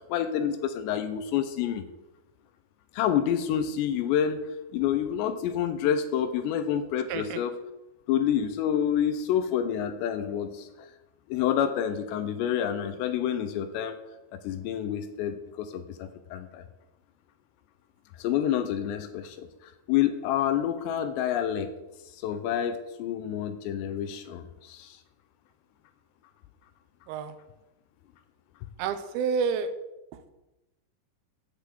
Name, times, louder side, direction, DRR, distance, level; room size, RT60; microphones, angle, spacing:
voice 1, 0.1-1.8 2.9-4.5 4.7-7.6 8.1-10.9 11.3-14.0 14.3-16.7 18.2-21.8 22.2-25.0, left 9 dB, 80° left, 9 dB, 2.8 m, -28 dB
voice 2, 28.8-29.7, right 6 dB, 75° right, 9 dB, 2.3 m, -29 dB
8.3 x 6.9 x 7.6 m, 0.97 s
omnidirectional pair, 5.3 m